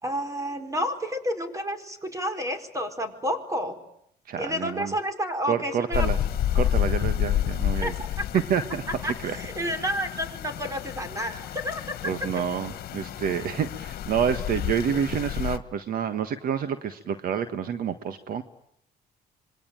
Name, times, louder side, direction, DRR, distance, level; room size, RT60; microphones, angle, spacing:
voice 1, 0.0-3.8 4.4-6.1 7.8-7.9 9.0-11.8, equal, 20° right, 8 dB, 4.7 m, -30 dB
voice 2, 4.2-4.9 5.4-6.2 6.5-7.9 8.3-9.4 9.7-9.8 12.0-18.4, right 8 dB, 60° right, 10 dB, 1.5 m, -28 dB
sound 1, 5.9-15.6, left 11 dB, 65° left, 1.7 m, -30 dB
27.0 x 22.5 x 9.0 m, 0.74 s
cardioid pair, 110°, 17 cm